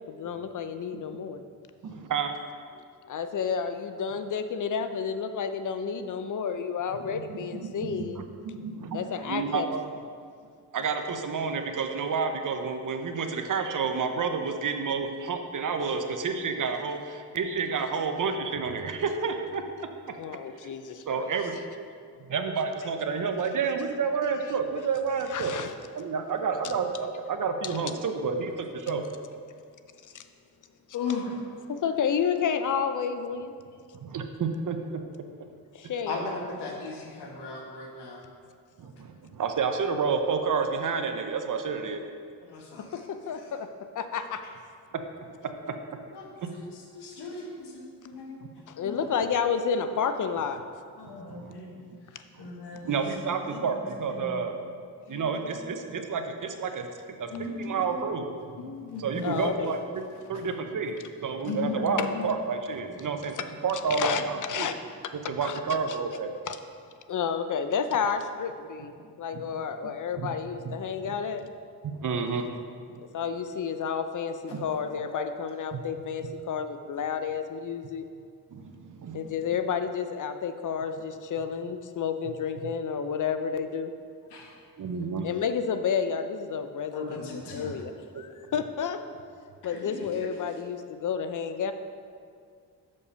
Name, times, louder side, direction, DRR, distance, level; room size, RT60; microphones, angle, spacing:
voice 1, 0.1-1.4 3.1-8.2 8.9-9.7 20.2-21.3 25.3-25.7 28.9-29.0 30.1-30.3 31.7-33.6 35.7-36.2 42.9-43.7 43.9-44.4 48.7-50.6 59.2-59.8 62.0-62.1 64.0-64.2 64.5-64.7 65.4-65.6 66.5-66.6 67.1-71.4 73.0-78.1 79.1-83.9 85.2-87.2 87.5-89.0 89.6-91.7, left 6 dB, 50° left, 9 dB, 0.6 m, -31 dB
voice 2, 1.8-2.3 7.1-9.8 10.7-19.6 21.1-21.6 22.2-25.6 25.9-29.0 33.9-34.8 38.8-42.0 44.9-45.8 46.4-46.6 51.0-51.5 52.3-54.5 55.1-56.9 57.2-58.7 59.0-64.7 65.1-66.3 69.0-69.6 70.2-70.4 70.6-70.7 71.8-72.5 72.9-73.0 74.5-74.6 75.7-75.9 78.5-79.3 84.8-85.3 88.1-88.2, right 5 dB, 50° right, 6 dB, 0.8 m, -30 dB
voice 3, 30.9-31.4 36.1-38.3 42.4-43.0 43.4-43.5 46.1-48.4 48.8-49.1 51.0-51.8 52.4-53.1 53.5-53.8 54.1-54.4 55.0-55.4 57.3-58.2 58.6-59.5 61.4-62.3 62.9-63.0 75.1-75.2 84.3-84.5 86.9-87.7 89.6-90.3, left 4 dB, 90° left, 0 dB, 1.3 m, -37 dB
6.6 x 5.4 x 5.5 m, 2.2 s
cardioid pair, 80°, 39 cm